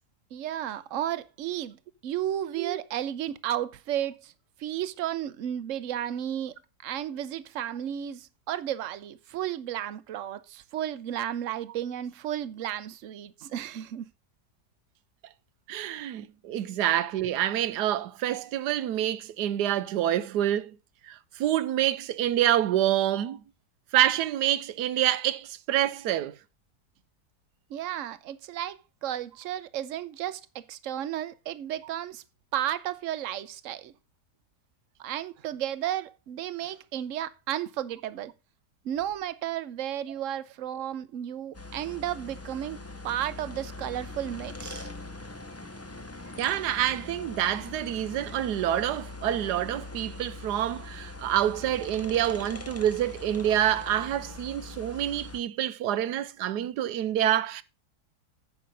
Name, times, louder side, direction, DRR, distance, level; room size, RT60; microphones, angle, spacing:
voice 1, 0.3-4.3 4.6-6.6 6.8-14.1 27.7-32.2 32.5-33.9 35.0-38.3 38.8-44.9, right 11 dB, 60° right, 0.9 m, -33 dB
voice 2, 15.7-20.8 21.1-23.4 23.9-26.3 46.4-57.6, right 12 dB, 80° right, 1.2 m, -27 dB
sound 1, 41.5-55.4, left 2 dB, 20° left, 0.4 m, -42 dB
9.4 x 6.0 x 5.2 m
omnidirectional pair, 1.8 m